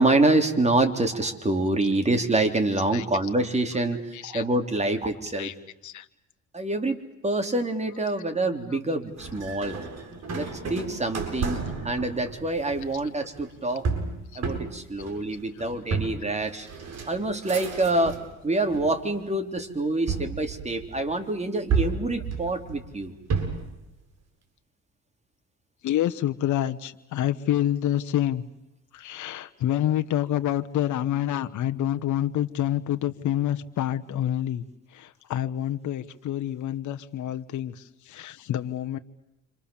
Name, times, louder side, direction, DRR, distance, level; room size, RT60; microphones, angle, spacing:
voice 1, 0.0-5.5 6.5-7.0 7.2-9.8 10.3-13.9 14.4-16.7 17.1-23.1, right 2 dB, 20° right, 5 dB, 3.8 m, -26 dB
voice 2, 4.1-4.4 5.3-5.5 5.8-6.1 8.7-8.8 11.5-11.6 12.9-13.0 15.5-15.8 25.8-28.4 28.9-39.0, left 12 dB, 75° left, 9 dB, 1.3 m, -28 dB
sound 1, 9.2-18.3 18.7-19.4 20.1-21.2 21.7-23.8, right 5 dB, 60° right, 7.8 m, -32 dB
29.0 x 26.5 x 7.3 m, 0.91 s
cardioid pair, 90°, 30 cm